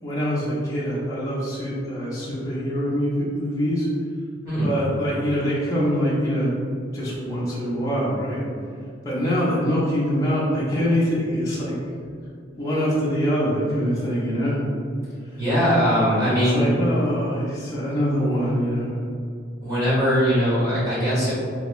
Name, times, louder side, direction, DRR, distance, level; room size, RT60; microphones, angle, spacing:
voice 1, 0.0-3.9 4.6-6.5 6.9-8.4 9.0-11.8 12.6-14.6 15.3-15.4 16.1-19.0, equal, 15° left, -9 dB, 0.7 m, -24 dB
voice 2, 15.4-16.7 19.6-21.4, equal, 15° right, -11 dB, 1.4 m, -21 dB
3.4 x 2.8 x 3.1 m, 2.3 s
head